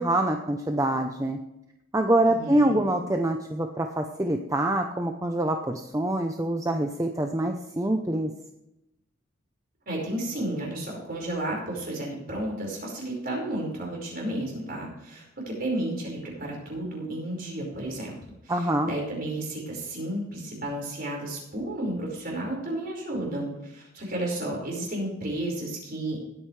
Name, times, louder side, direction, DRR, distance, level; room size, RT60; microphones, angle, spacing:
voice 1, 0.0-1.4 1.9-8.3 18.5-18.9, right 1 dB, 15° right, 4 dB, 0.7 m, -25 dB
voice 2, 2.3-2.8 9.9-18.1 18.4-26.2, right 1 dB, 45° right, -1 dB, 5.0 m, -32 dB
19.0 x 9.1 x 3.3 m, 0.89 s
head